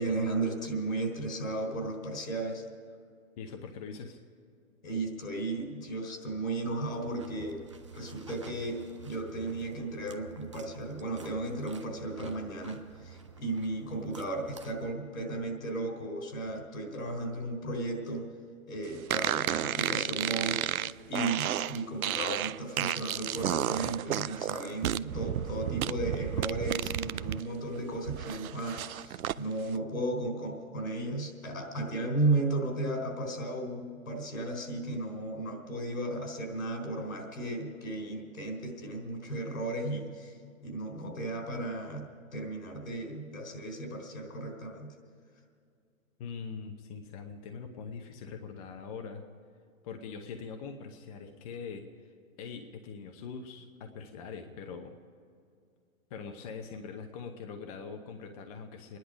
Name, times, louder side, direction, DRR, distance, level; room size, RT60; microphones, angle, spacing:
voice 1, 0.0-2.7 4.8-7.6 7.9-18.3 18.7-44.9, right 2 dB, 75° left, 2 dB, 3.9 m, -35 dB
voice 2, 3.4-4.2 46.2-49.2 49.8-52.1 52.4-54.9 56.1-59.0, left 5 dB, 25° left, 4 dB, 0.8 m, -42 dB
sound 1, 6.9-14.9, right 6 dB, 25° right, 0.3 m, -50 dB
sound 2, 19.1-27.4 27.8-29.4, right 12 dB, 85° right, 0.6 m, -32 dB
25.0 x 10.5 x 5.0 m, 2.3 s
hypercardioid pair, 150°, 41 cm